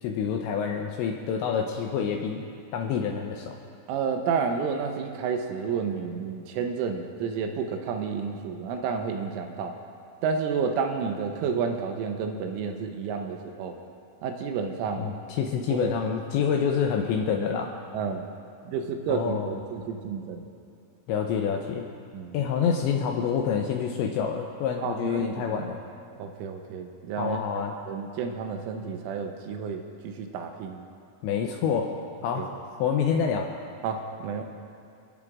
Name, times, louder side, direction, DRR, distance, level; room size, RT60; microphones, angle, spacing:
voice 1, 0.0-2.4 2.7-3.6 15.0-17.8 19.1-19.6 21.1-21.9 22.3-25.8 27.2-27.8 31.2-31.9 32.2-32.5 32.8-33.5, left 7 dB, 85° left, 2 dB, 2.6 m, -27 dB
voice 2, 3.9-9.8 10.2-13.8 14.2-15.1 15.7-15.9 17.9-18.3 18.6-20.5 22.1-22.4 24.8-25.7 26.2-27.4 27.9-30.9 32.4-32.5 33.8-34.4, right 6 dB, 85° right, 4 dB, 3.2 m, -30 dB
30.0 x 11.0 x 2.4 m, 2.5 s
omnidirectional pair, 5.9 m